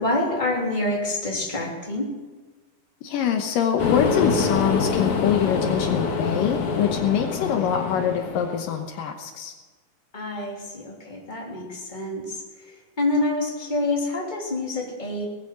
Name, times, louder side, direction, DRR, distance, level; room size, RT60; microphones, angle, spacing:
voice 1, 0.0-2.1 10.1-12.4 13.0-15.2, left 2 dB, 15° left, -2 dB, 2.9 m, -27 dB
voice 2, 3.0-9.5, left 8 dB, 75° left, 5 dB, 2.6 m, -24 dB
sound 1, 3.8-8.7, left 5 dB, 60° left, 3.0 m, -25 dB
19.5 x 9.2 x 7.6 m, 1.3 s
omnidirectional pair, 4.1 m